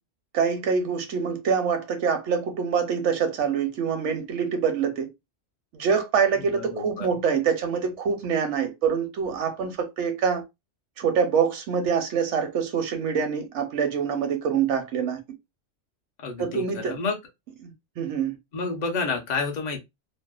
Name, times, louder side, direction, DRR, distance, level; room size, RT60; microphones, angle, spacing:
voice 1, 0.3-5.1 5.7-10.4 11.0-15.2 16.4-17.0 17.6-18.4, right 6 dB, 80° right, 0.9 m, -25 dB
voice 2, 6.5-7.1 16.2-17.2 18.5-19.8, left 4 dB, 45° left, 0.6 m, -29 dB
2.7 x 2.1 x 2.2 m
omnidirectional pair, 1.2 m